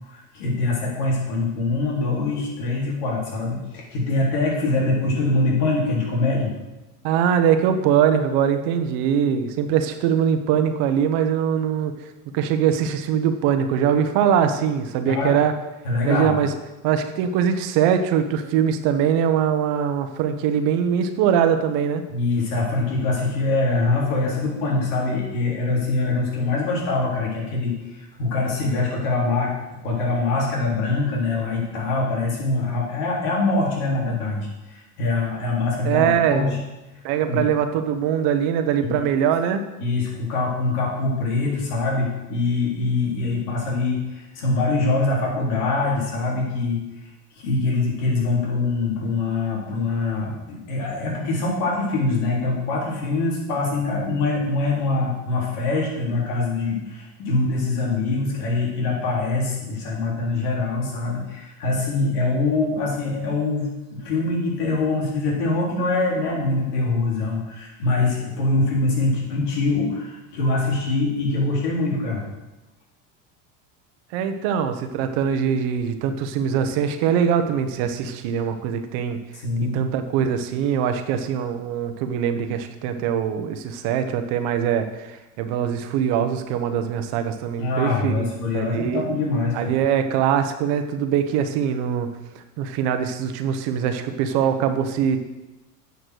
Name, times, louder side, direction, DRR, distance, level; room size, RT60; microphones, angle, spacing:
voice 1, 0.0-6.5 15.1-15.4 15.8-16.4 22.1-29.5 29.8-36.6 37.2-37.5 38.8-39.0 39.8-72.2 79.4-79.8 87.6-89.7, left 3 dB, 75° left, -3 dB, 3.9 m, -24 dB
voice 2, 7.0-11.9 12.3-15.5 16.0-16.5 16.8-22.0 35.8-36.5 37.0-39.6 74.1-79.2 79.6-88.3 88.5-89.0 89.6-92.1 92.3-95.2, right 8 dB, 60° right, 8 dB, 1.3 m, -22 dB
9.5 x 6.0 x 6.4 m, 1.0 s
hypercardioid pair, 90°, 46 cm